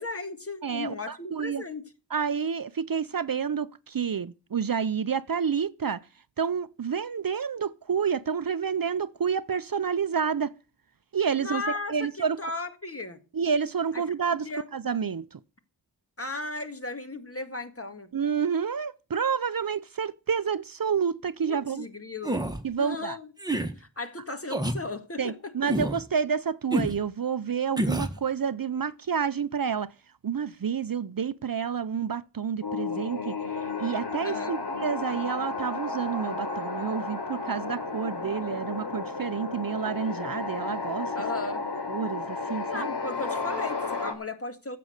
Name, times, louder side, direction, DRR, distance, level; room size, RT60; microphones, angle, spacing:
voice 1, 0.0-1.8 11.4-13.2 13.9-14.0 14.3-14.7 16.2-18.1 21.4-22.4 22.8-23.3 23.8-25.4 34.2-34.6 41.2-41.6 42.7-44.8, left 3 dB, 30° left, 1.9 m, -36 dB
voice 2, 0.6-1.6 2.1-6.0 6.4-10.5 11.1-11.6 11.9-12.4 13.3-15.4 18.1-21.9 22.6-23.2 25.2-29.9 30.2-33.3 33.8-41.1 41.9-42.9, right 6 dB, 50° right, 0.6 m, -29 dB
sound 1, 22.2-22.6 23.4-23.7 24.5-24.8 25.7-26.0 26.7-27.0 27.8-28.2, right 1 dB, 10° right, 1.6 m, -27 dB
sound 2, 32.6-44.1, left 3 dB, 65° left, 3.4 m, -33 dB
15.0 x 7.7 x 6.4 m
wide cardioid pair, 80°, 43 cm